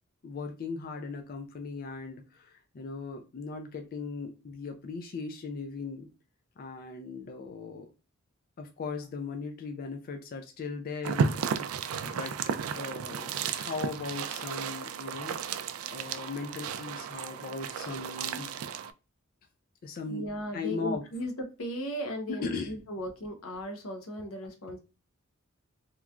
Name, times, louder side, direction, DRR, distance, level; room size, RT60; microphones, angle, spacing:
voice 1, 0.2-6.1 6.6-7.9 8.6-11.3 12.0-12.3 12.7-15.4 15.9-18.5 19.8-20.2 20.5-21.0 22.3-22.7, left 4 dB, 45° left, 4 dB, 0.3 m, -38 dB
sound 1, 11.0-18.9, right 6 dB, 80° right, 0.3 m, -33 dB
voice 2, 20.1-24.8, equal, 90° left, 4 dB, 0.8 m, -36 dB
2.9 x 2.3 x 2.3 m, 0.32 s
head